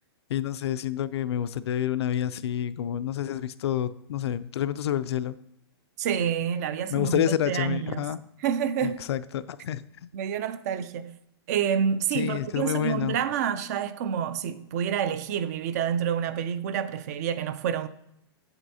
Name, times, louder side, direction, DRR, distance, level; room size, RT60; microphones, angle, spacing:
voice 1, 0.3-5.4 6.9-8.2 8.8-9.8 12.1-13.2, left 11 dB, 75° left, 0.4 m, -28 dB
voice 2, 6.0-8.1 8.4-9.1 10.1-11.1 11.5-17.9, right 8 dB, 40° right, 0.4 m, -28 dB
7.9 x 7.8 x 2.7 m
hypercardioid pair, 160°, 14 cm